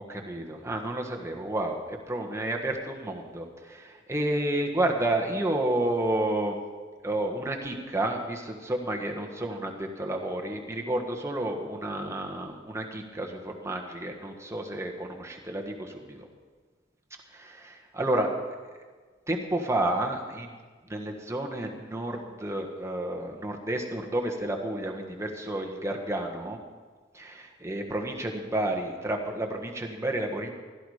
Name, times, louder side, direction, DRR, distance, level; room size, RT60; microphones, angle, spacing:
voice 1, 0.0-6.6 7.0-16.3 17.3-18.5 19.3-20.5 20.9-26.6 27.1-30.5, right 1 dB, 15° right, 1 dB, 1.5 m, -31 dB
16.5 x 12.5 x 5.0 m, 1.4 s
head